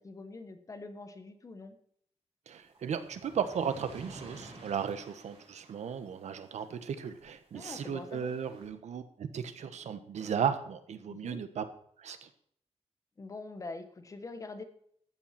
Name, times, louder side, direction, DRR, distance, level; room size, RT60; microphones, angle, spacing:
voice 1, 0.0-1.8 7.5-8.3 11.1-11.4 13.2-14.6, left 3 dB, 30° left, 8 dB, 1.3 m, -44 dB
sound 1, 2.5-7.2 7.6-8.7, right 2 dB, 55° right, 7.0 m, -52 dB
voice 2, 2.5-11.6 12.0-12.3, right 7 dB, 85° right, 10 dB, 1.3 m, -35 dB
13.5 x 8.9 x 5.9 m, 0.65 s
wide cardioid pair, 180°, 11 cm